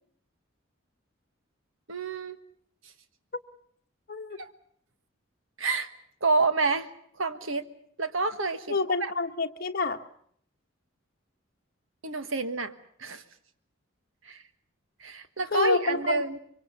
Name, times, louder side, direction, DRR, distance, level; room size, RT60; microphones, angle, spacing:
voice 1, 1.9-2.4 4.4-4.5 5.6-5.9 6.2-6.9 7.2-7.6 8.0-8.7 9.0-9.1 12.0-12.7 13.0-13.2 14.2-14.4 15.0-16.4, right 3 dB, 80° right, 10 dB, 1.5 m, -28 dB
voice 2, 8.7-10.0 15.5-16.4, left 3 dB, 45° left, 5 dB, 1.2 m, -28 dB
24.5 x 24.0 x 6.9 m, 0.65 s
head